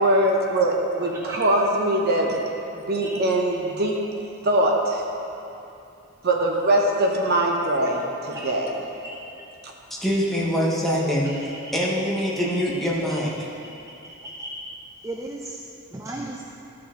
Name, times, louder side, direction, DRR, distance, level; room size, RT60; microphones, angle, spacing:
voice 1, 0.0-2.4 2.7-4.0 4.4-5.0 6.2-8.7 9.6-9.7, right 1 dB, 50° right, 0 dB, 0.9 m, -22 dB
voice 2, 10.0-13.3, equal, ahead, -5 dB, 1.2 m, -24 dB
voice 3, 15.0-15.6 15.9-16.4, right 2 dB, 15° right, 0 dB, 0.4 m, -35 dB
13.5 x 5.7 x 3.8 m, 2.7 s
head